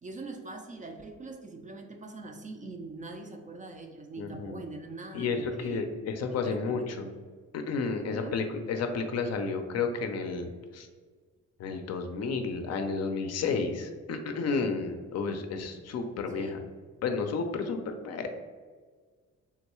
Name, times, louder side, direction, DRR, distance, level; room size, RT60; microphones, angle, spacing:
voice 1, 0.0-5.9 6.3-6.9 8.0-8.4 16.3-16.6, right 3 dB, 25° right, 4 dB, 0.3 m, -43 dB
voice 2, 4.2-4.6 5.1-7.1 7.5-10.9 11.6-16.6 17.0-18.3, left 4 dB, 55° left, 5 dB, 0.5 m, -32 dB
3.6 x 2.2 x 3.0 m, 1.5 s
cardioid pair, 90°, 30 cm